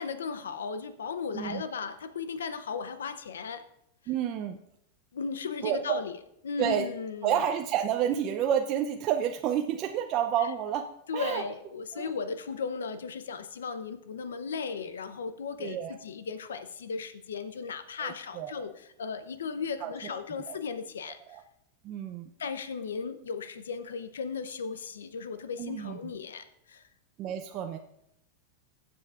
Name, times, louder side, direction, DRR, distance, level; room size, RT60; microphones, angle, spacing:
voice 1, 0.0-3.6 5.1-6.2 6.4-7.3 11.1-21.2 22.4-26.9, left 5 dB, 90° left, 10 dB, 0.6 m, -36 dB
voice 2, 4.1-4.6 5.6-6.0 6.6-6.9 7.2-10.8 11.1-11.4 11.9-12.1 15.6-15.9 18.0-18.7 19.8-20.2 20.5-20.6 21.3-21.4 21.8-22.3 25.6-26.1 27.2-27.8, right 9 dB, 45° right, 5 dB, 0.6 m, -30 dB
16.5 x 7.7 x 2.5 m, 0.77 s
hypercardioid pair, 115°, 0 cm